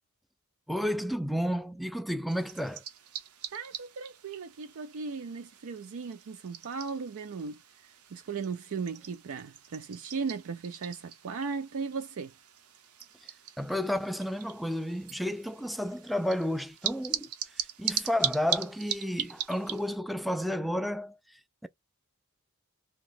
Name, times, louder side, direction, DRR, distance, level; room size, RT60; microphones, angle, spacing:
voice 1, 0.7-2.8 13.6-21.7, equal, ahead, 0.3 m, -32 dB
sound 1, 2.3-20.0, right 10 dB, 90° right, 0.8 m, -40 dB
voice 2, 3.5-7.6 8.1-12.3, right 5 dB, 65° right, 0.4 m, -37 dB
2.9 x 2.9 x 3.9 m
head